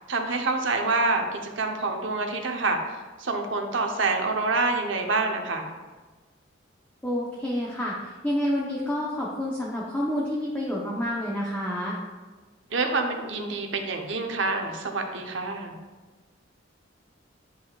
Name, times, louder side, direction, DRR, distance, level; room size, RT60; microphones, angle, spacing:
voice 1, 0.1-2.8 3.2-5.7 12.7-15.8, right 3 dB, 75° right, 3 dB, 0.9 m, -27 dB
voice 2, 7.0-12.0, equal, 10° left, -5 dB, 0.9 m, -29 dB
10.0 x 5.9 x 2.4 m, 1.3 s
head